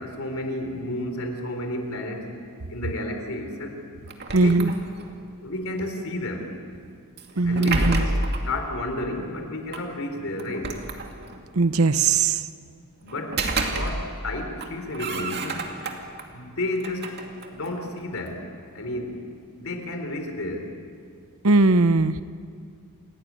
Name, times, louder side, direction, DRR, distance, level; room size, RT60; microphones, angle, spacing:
voice 1, 0.0-2.3 2.7-3.7 4.3-4.8 5.4-6.5 7.4-8.1 8.5-10.7 13.0-13.4 13.8-15.6 16.3-17.1 17.5-18.4 18.7-19.2 19.5-20.7, left 1 dB, 65° left, 5 dB, 3.9 m, -31 dB
sound 1, 4.1-5.2 7.2-8.5 9.7-9.8 10.4-11.5 13.1-14.3 14.6-16.2 16.7-18.4, right 2 dB, 50° right, 2.5 m, -29 dB
voice 2, 4.3-4.7 7.4-8.0 11.6-12.4 21.4-22.2, right 3 dB, 70° right, 13 dB, 0.9 m, -19 dB
28.5 x 18.0 x 9.6 m, 2.3 s
head